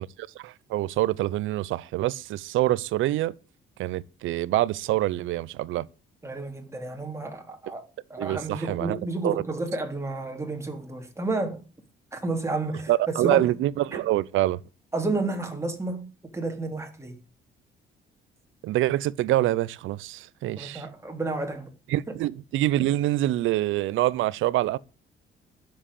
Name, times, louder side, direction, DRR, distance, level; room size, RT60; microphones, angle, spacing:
voice 1, 0.0-3.3 3.8-5.9 8.2-9.0 9.2-9.3 12.9-14.6 18.6-20.9 21.9-24.8, right 15 dB, 85° right, 0.6 m, -25 dB
voice 2, 6.2-7.8 8.1-11.6 12.1-12.9 13.2-13.5 13.9-14.0 14.9-16.1 16.3-17.2 20.6-21.7, right 2 dB, 15° right, 3.4 m, -31 dB
10.0 x 7.6 x 8.3 m
cardioid pair, 90°, 20 cm